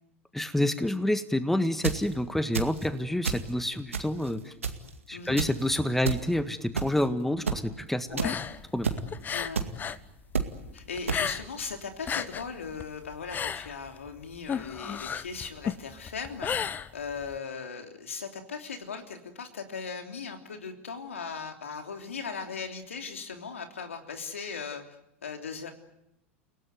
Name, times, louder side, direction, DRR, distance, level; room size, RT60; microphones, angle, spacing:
voice 1, 0.3-4.5 5.1-8.2 8.7-8.9, left 1 dB, 5° left, 11 dB, 1.6 m, -28 dB
sound 1, 1.6-2.0 2.5-2.9 3.2-3.5 3.9-4.3 4.6-4.9 5.4-5.5 6.0-6.2 6.7-7.0 7.5-7.6 8.2-8.3 8.8-9.0 9.5-9.7 10.3-10.5 11.1-11.2, right 5 dB, 85° right, 2.2 m, -28 dB
woman having a long sensual laugh, 8.1-10.1 10.3-11.7 11.9-17.4, left 7 dB, 25° left, 1.1 m, -33 dB
voice 2, 9.3-9.6 10.7-24.8 25.2-25.7, left 5 dB, 80° left, 5 dB, 3.2 m, -38 dB
30.0 x 18.0 x 9.4 m, 0.85 s
hypercardioid pair, 90°, 7 cm